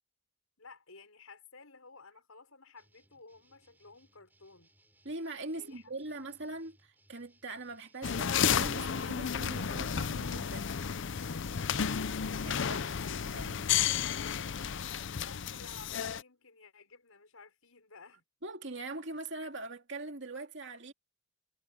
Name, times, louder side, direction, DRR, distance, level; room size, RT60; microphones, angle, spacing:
voice 1, 0.6-4.7 5.5-6.4 14.3-18.2, left 4 dB, 85° left, 6.0 m, -55 dB
sound 1, 2.8-13.4, right 1 dB, 10° right, 7.7 m, -68 dB
voice 2, 5.0-10.7 12.4-12.9 13.3-13.7 18.4-20.9, right 2 dB, 55° right, 2.4 m, -42 dB
sound 2, 8.0-16.2, left 7 dB, 60° left, 0.6 m, -32 dB
head